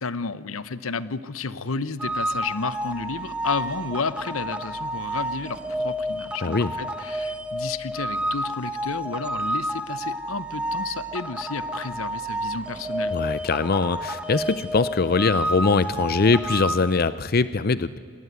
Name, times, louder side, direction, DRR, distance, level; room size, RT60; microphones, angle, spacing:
voice 1, 0.0-13.2, left 4 dB, 85° left, 16 dB, 0.9 m, -32 dB
sound 1, 2.0-16.7, right 1 dB, 5° right, 1.4 m, -30 dB
voice 2, 6.4-6.7 13.1-18.0, left 4 dB, 45° left, 16 dB, 0.6 m, -22 dB
26.0 x 19.5 x 9.5 m, 2.1 s
head